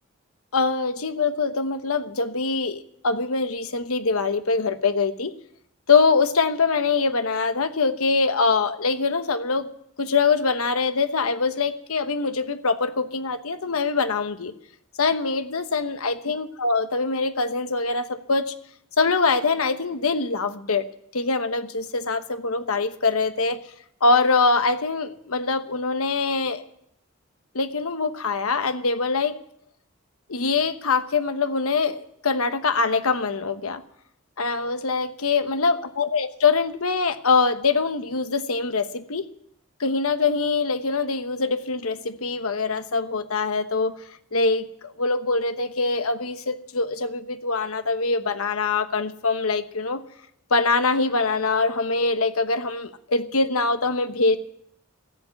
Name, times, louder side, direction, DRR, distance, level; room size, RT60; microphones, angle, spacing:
voice 1, 0.5-5.3 5.9-9.7 10.0-14.5 15.0-18.5 19.0-20.8 21.1-23.6 24.0-26.6 27.5-29.4 30.3-33.8 34.4-39.3 39.8-44.0 44.3-50.0 50.5-54.4, left 4 dB, 80° left, 10 dB, 1.1 m, -23 dB
14.5 x 8.2 x 9.5 m, 0.73 s
head